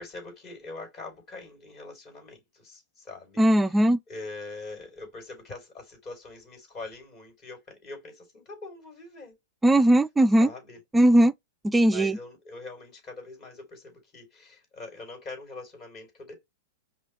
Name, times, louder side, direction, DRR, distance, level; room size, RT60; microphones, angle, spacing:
voice 1, 0.0-9.4 10.4-10.8 11.8-16.4, left 3 dB, 40° left, 3.4 m, -43 dB
voice 2, 3.4-4.0 9.6-10.5 10.9-11.3 11.6-12.2, right 1 dB, 10° right, 0.4 m, -19 dB
5.3 x 2.4 x 3.2 m
hypercardioid pair, 110°, 0 cm